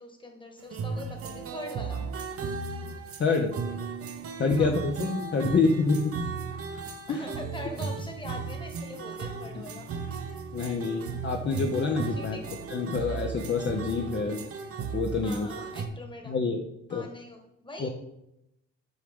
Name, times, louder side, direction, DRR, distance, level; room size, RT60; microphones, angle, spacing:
voice 1, 0.0-2.0 4.6-4.8 7.1-9.9 12.1-12.5 15.2-16.4 16.9-17.9, left 1 dB, 15° left, 3 dB, 1.4 m, -42 dB
sound 1, 0.6-15.9, right 5 dB, 50° right, 0.8 m, -36 dB
voice 2, 3.2-3.5 4.4-6.1 7.1-7.2 9.5-9.6 10.5-14.4 14.9-15.6 16.3-17.1 17.8-17.9, left 4 dB, 40° left, 2 dB, 0.7 m, -27 dB
7.9 x 4.8 x 3.6 m, 0.84 s
cardioid pair, 90°, 30 cm